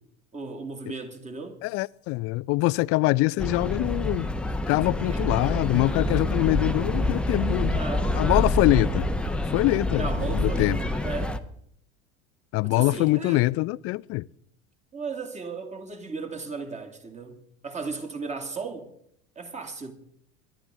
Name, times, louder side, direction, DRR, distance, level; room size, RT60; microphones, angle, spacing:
voice 1, 0.3-1.6 5.1-5.2 7.7-8.1 10.0-11.4 12.6-13.4 14.9-17.4 17.6-18.9 19.4-19.9, right 4 dB, 20° right, 2.5 m, -35 dB
voice 2, 1.6-4.3 4.7-7.8 8.2-9.1 9.5-10.8 12.5-14.3, left 21 dB, 40° left, 0.5 m, -24 dB
sound 1, 3.4-11.4, left 1 dB, 5° left, 1.0 m, -27 dB
24.5 x 11.5 x 3.7 m
figure-of-eight pair, 75°, 36 cm